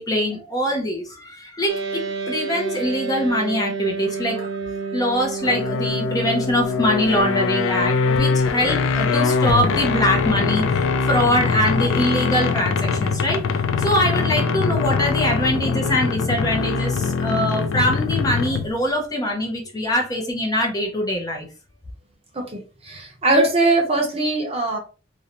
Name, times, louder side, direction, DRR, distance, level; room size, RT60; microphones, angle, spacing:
voice 1, 0.0-21.5, equal, 20° left, 1 dB, 0.5 m, -23 dB
sound 1, 1.7-13.2, right 4 dB, 80° right, 0.5 m, -33 dB
sound 2, 5.4-18.8, left 5 dB, 75° left, 0.3 m, -22 dB
voice 2, 22.8-24.8, right 2 dB, 30° right, 1 dB, 0.7 m, -20 dB
2.5 x 2.1 x 2.8 m, 0.34 s
head